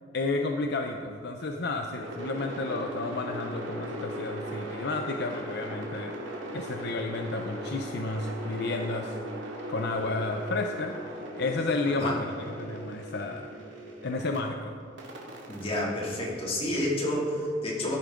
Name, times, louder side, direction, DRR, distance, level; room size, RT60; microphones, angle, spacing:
voice 1, 0.1-6.1 6.5-9.2 9.7-10.9 11.4-13.5 14.0-14.7, left 3 dB, 60° left, 4 dB, 0.6 m, -31 dB
sound 1, 2.0-14.4 15.0-17.1, right 1 dB, 70° right, 2.3 m, -39 dB
voice 2, 15.5-18.0, left 1 dB, 30° left, -5 dB, 2.8 m, -29 dB
17.0 x 10.0 x 3.8 m, 2.3 s
head